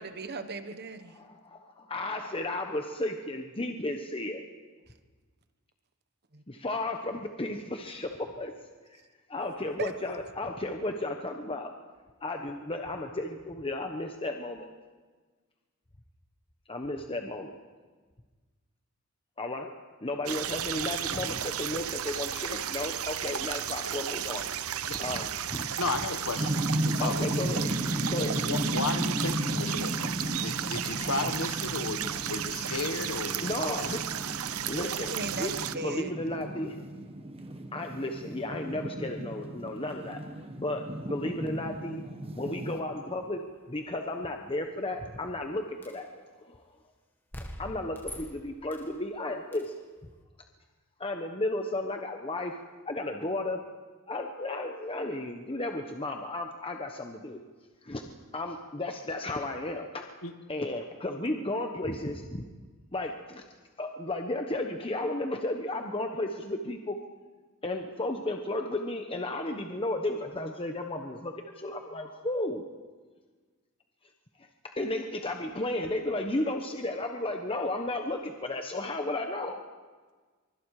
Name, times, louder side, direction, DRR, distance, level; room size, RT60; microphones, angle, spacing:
voice 1, 0.0-1.2 9.8-9.9 35.1-36.1, right 3 dB, 50° right, 1.3 m, -37 dB
voice 2, 1.2-4.4 6.6-8.1 8.4-8.5 9.3-11.7 12.2-14.7 16.7-17.5 19.4-19.7 20.0-24.4 25.0-25.7 27.0-28.4 33.4-34.0 34.7-36.7 37.7-40.2 40.6-42.0 42.3-46.6 47.6-49.8 51.0-52.6 52.9-53.6 54.1-57.4 57.8-60.1 60.5-62.4 62.9-63.4 63.8-67.0 67.6-72.6 74.4-74.5 74.8-79.6, left 2 dB, 25° left, 1.2 m, -34 dB
sound 1, 20.3-35.7, right 10 dB, 70° right, 0.8 m, -34 dB
voice 3, 25.7-27.3 28.1-33.9 60.2-60.3, left 3 dB, 70° left, 1.6 m, -34 dB
sound 2, 26.4-42.8, right 1 dB, 25° right, 1.5 m, -35 dB
sound 3, 45.8-46.1 47.3-49.0 49.5-49.8, left 1 dB, 10° left, 1.8 m, -43 dB
24.5 x 24.0 x 4.9 m
head